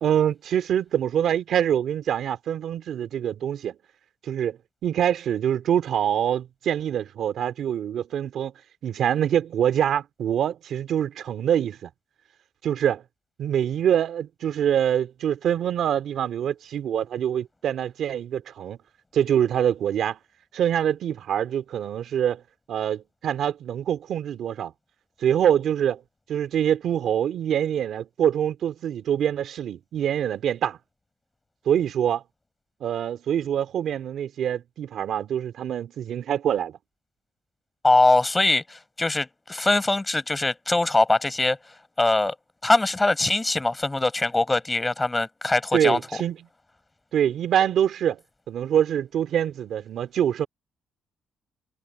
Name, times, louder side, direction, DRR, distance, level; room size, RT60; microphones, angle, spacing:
voice 1, 0.0-3.8 4.2-8.5 8.8-11.9 12.6-13.0 13.4-18.8 19.1-20.2 20.5-22.4 22.7-24.7 25.2-26.0 26.3-30.8 31.7-32.2 32.8-36.8 45.7-46.4 47.1-48.2 48.5-50.5, right 9 dB, 70° right, 2.4 m, -25 dB
voice 2, 37.8-41.6 42.0-42.4 42.6-46.0, left 2 dB, 15° left, 5.2 m, -22 dB
cardioid pair, 90°, 0 cm